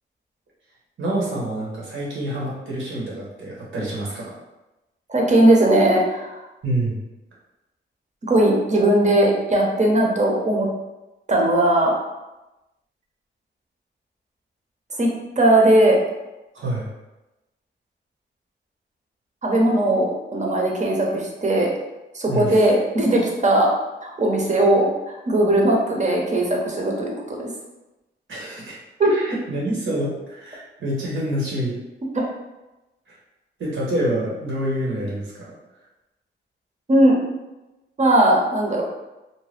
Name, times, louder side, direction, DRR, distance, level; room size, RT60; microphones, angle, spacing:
voice 1, 1.0-4.3 6.6-7.0 16.5-16.9 22.3-22.6 28.3-31.8 33.1-33.2 33.6-35.5, right 1 dB, 75° right, -5 dB, 1.1 m, -27 dB
voice 2, 5.1-6.3 8.2-10.7 11.3-11.9 15.0-15.1 15.4-16.0 19.4-21.7 22.1-23.7 24.0-27.5 29.0-29.1 36.9-37.2 38.0-38.8, right 1 dB, 35° right, -1 dB, 0.8 m, -18 dB
2.7 x 2.2 x 3.3 m, 1.0 s
cardioid pair, 70°, 21 cm